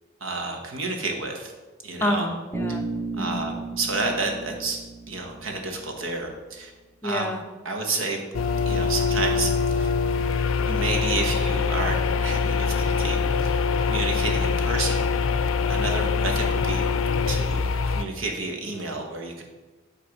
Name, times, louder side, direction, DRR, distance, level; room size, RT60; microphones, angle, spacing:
voice 1, 0.2-1.5 1.8-2.3 3.2-4.8 5.1-6.7 7.0-7.3 7.6-8.2 8.7-9.9 10.6-15.3 15.7-16.8 17.3-19.4, right 3 dB, 85° right, 3 dB, 1.2 m, -30 dB
voice 2, 2.0-2.8 3.1-3.5 7.0-7.4, equal, 10° left, 3 dB, 0.6 m, -28 dB
Bass guitar, 2.5-6.4, right 3 dB, 10° right, 1.2 m, -34 dB
sound 1, 8.3-18.0, left 5 dB, 85° left, 0.4 m, -24 dB
7.8 x 3.3 x 5.8 m, 1.2 s
head